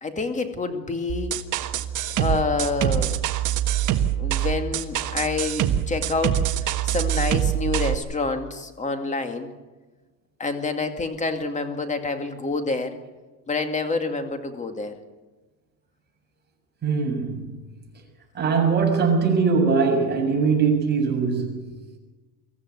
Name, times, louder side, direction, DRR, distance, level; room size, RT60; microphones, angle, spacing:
voice 1, 0.0-1.4 2.2-3.2 4.1-9.5 10.4-13.0 13.5-14.9, left 3 dB, 15° left, 2.3 m, -27 dB
sound 1, 1.1-7.9, right 11 dB, 40° right, 1.5 m, -25 dB
voice 2, 16.8-17.5 18.3-21.6, right 5 dB, 20° right, 6.8 m, -21 dB
24.0 x 14.5 x 8.3 m
supercardioid pair, 140°, 48 cm